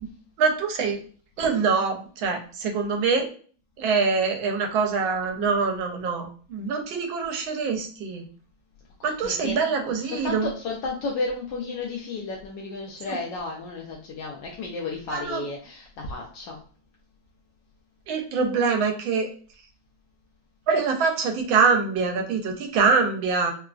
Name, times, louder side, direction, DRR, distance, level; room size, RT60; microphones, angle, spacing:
voice 1, 0.4-1.0 1.4-3.3 3.8-8.2 9.0-10.5 13.1-13.2 15.1-15.5 18.1-19.3 20.7-23.5, right 5 dB, 85° right, 4 dB, 1.4 m, -24 dB
voice 2, 9.0-9.6 10.0-16.6, left 3 dB, 75° left, -1 dB, 1.2 m, -33 dB
3.6 x 2.4 x 2.3 m, 0.43 s
omnidirectional pair, 2.1 m